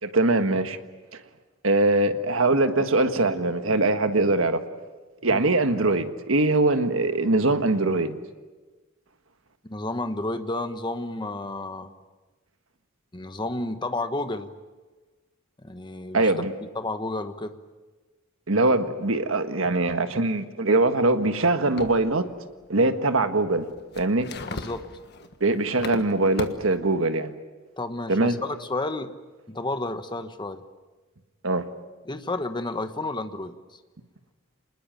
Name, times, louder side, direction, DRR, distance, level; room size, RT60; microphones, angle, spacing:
voice 1, 0.0-0.8 1.6-4.6 5.2-8.2 16.1-16.5 18.5-22.3 22.7-23.7 23.9-24.3 25.4-27.3 28.1-28.4 31.4-31.7, right 2 dB, 75° right, 8 dB, 1.6 m, -22 dB
voice 2, 9.6-11.9 13.1-14.5 15.6-16.3 16.7-17.5 24.5-24.9 27.8-29.1 29.5-30.6 32.0-33.5, left 2 dB, 20° left, 9 dB, 1.2 m, -31 dB
sound 1, 21.8-22.1 23.6-26.7, left 2 dB, 55° left, 1.5 m, -37 dB
26.0 x 20.5 x 9.0 m, 1.3 s
head